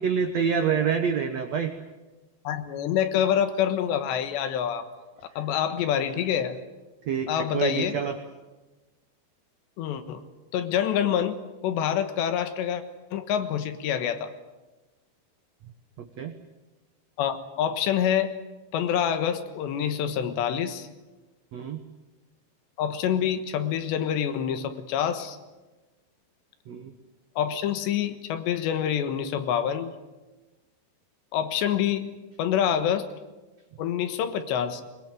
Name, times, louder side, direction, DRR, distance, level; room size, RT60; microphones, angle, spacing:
voice 1, 0.0-1.7 6.0-6.1 7.1-8.2 16.0-16.3 21.5-21.8 26.7-26.9, right 7 dB, 80° right, 5 dB, 1.5 m, -27 dB
voice 2, 2.5-4.9 5.4-6.6 7.3-8.0 9.8-10.2 10.5-11.4 11.6-12.8 13.1-14.3 17.2-18.3 18.7-20.9 22.8-25.4 27.4-29.9 31.3-32.1 32.4-33.1 33.8-34.8, left 9 dB, 80° left, 9 dB, 3.6 m, -26 dB
21.5 x 21.0 x 9.1 m, 1.2 s
omnidirectional pair, 5.0 m